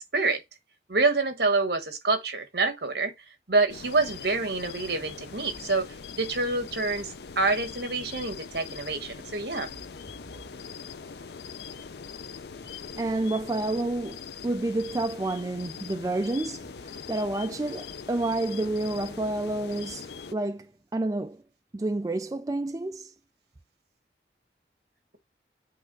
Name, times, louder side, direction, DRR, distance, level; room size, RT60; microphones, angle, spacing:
voice 1, 0.9-3.1 3.5-5.9 6.2-9.7, right 3 dB, 70° right, 1.3 m, -27 dB
sound 1, 3.7-20.3, left 6 dB, 70° left, 0.5 m, -42 dB
voice 2, 13.0-20.0 20.3-21.4 21.7-23.1, right 2 dB, 20° right, 0.3 m, -29 dB
8.4 x 3.4 x 3.8 m
head